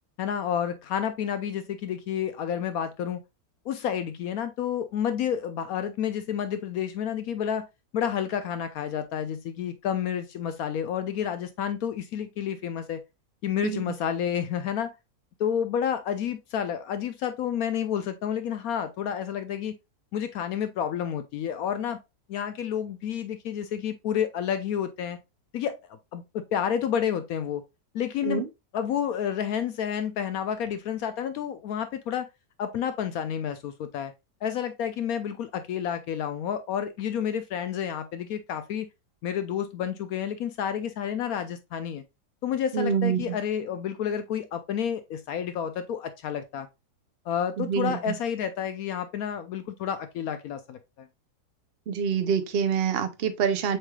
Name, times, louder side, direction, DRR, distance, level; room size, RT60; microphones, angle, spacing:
voice 1, 0.2-3.2 3.7-7.7 7.9-13.0 13.4-14.9 15.4-19.7 20.1-22.0 22.3-25.2 25.5-25.8 26.1-27.6 27.9-28.4 28.7-32.3 32.6-34.1 34.4-38.9 39.2-42.0 42.4-46.7 47.3-51.1, left 8 dB, 70° left, 0.9 m, -30 dB
voice 2, 42.7-43.4 47.6-48.1 51.9-53.8, right 7 dB, 65° right, 0.6 m, -26 dB
7.3 x 3.2 x 2.2 m
omnidirectional pair, 1.8 m